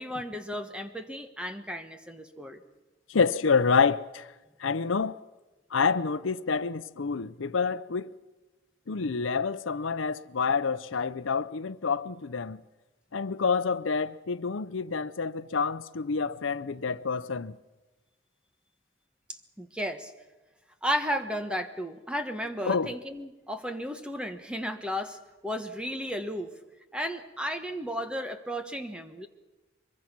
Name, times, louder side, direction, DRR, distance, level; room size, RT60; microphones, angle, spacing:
voice 1, 0.0-2.6 19.6-20.1 20.8-25.2 25.4-26.5 26.9-29.3, equal, 5° right, 1.2 m, -34 dB
voice 2, 3.1-4.3 4.6-5.2 5.7-8.1 8.9-12.6 13.1-17.6 22.6-22.9, left 5 dB, 85° left, 0.7 m, -28 dB
24.0 x 22.0 x 6.1 m
head